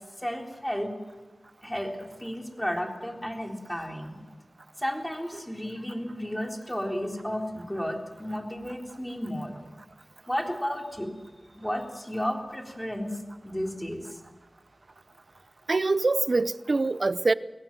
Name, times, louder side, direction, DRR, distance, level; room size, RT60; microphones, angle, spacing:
voice 1, 0.2-0.9 1.6-4.2 4.8-9.6 10.3-11.2 11.5-13.2 13.4-14.2, equal, 10° left, 3.7 m, -33 dB
voice 2, 15.7-17.3, right 3 dB, 55° right, 0.7 m, -24 dB
22.5 x 17.5 x 7.5 m
wide cardioid pair, 60°, 0 cm